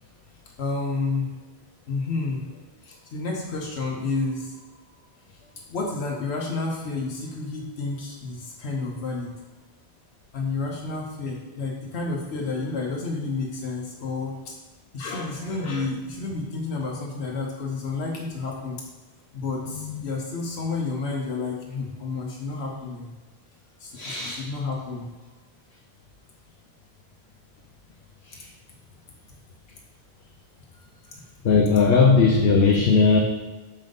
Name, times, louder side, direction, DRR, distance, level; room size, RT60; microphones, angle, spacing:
voice 1, 0.6-1.3 1.9-2.4 2.8-4.5 5.7-9.3 10.3-14.5 14.9-18.8 19.3-23.1 23.8-25.1, left 3 dB, 90° left, -1 dB, 1.2 m, -30 dB
voice 2, 19.7-20.0 23.9-24.4 28.3-28.5 31.4-33.2, left 4 dB, 70° left, 1 dB, 0.9 m, -19 dB
6.5 x 5.3 x 3.9 m, 1.2 s
omnidirectional pair, 1.1 m